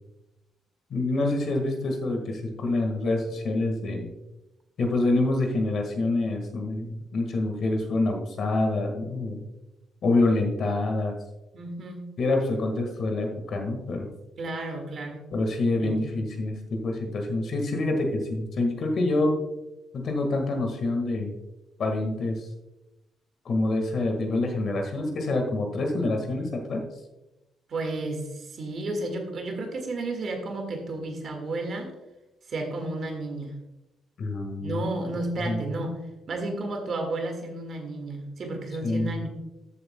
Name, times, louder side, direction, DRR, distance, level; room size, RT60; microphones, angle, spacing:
voice 1, 0.9-4.1 4.8-9.4 10.0-11.1 12.2-14.1 15.3-19.4 19.9-21.3 21.8-22.4 23.4-26.8 34.2-34.8 35.4-35.6 38.8-39.1, left 2 dB, 50° left, 3 dB, 1.6 m, -26 dB
voice 2, 11.5-12.0 14.4-15.3 15.8-16.1 27.7-32.0 32.5-33.5 34.6-36.0 36.3-39.3, right 2 dB, 45° right, 3 dB, 1.8 m, -32 dB
14.0 x 7.7 x 2.2 m, 0.99 s
cardioid pair, 155°, 0 cm